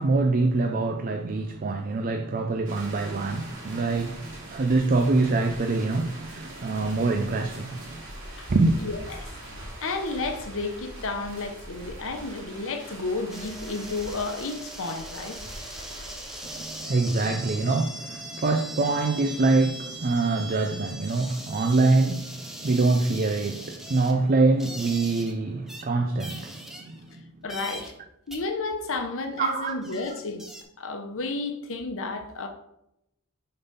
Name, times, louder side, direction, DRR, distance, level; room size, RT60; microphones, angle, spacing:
voice 1, 0.0-8.0 8.5-8.8 16.4-27.1 29.4-29.8, right 3 dB, 40° right, 0.5 m, -25 dB
sound 1, 2.7-17.1, right 1 dB, 60° right, 2.6 m, -43 dB
voice 2, 8.8-15.4 27.4-27.9 28.3-30.4 30.8-32.5, left 3 dB, 60° left, 0.9 m, -32 dB
sound 2, 13.3-25.3 25.7-25.8 26.2-27.2 27.5-28.0 28.3-28.4 29.3-29.4 29.7-30.6, right 1 dB, ahead, 0.9 m, -40 dB
7.0 x 3.9 x 5.5 m
head